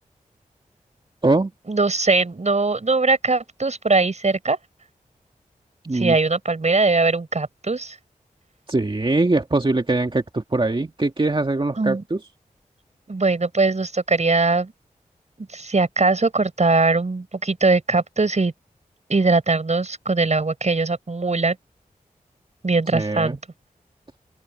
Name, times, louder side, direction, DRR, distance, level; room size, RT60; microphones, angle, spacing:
voice 1, 1.7-4.6 5.9-8.0 11.8-12.0 13.1-14.7 15.4-18.5 19.1-21.6 22.6-23.4, right 3 dB, 50° right, 5.5 m, -21 dB
voice 2, 5.8-6.2 8.7-12.2 22.9-23.4, right 2 dB, 35° right, 2.1 m, -22 dB
open air
cardioid pair, 40°, 15 cm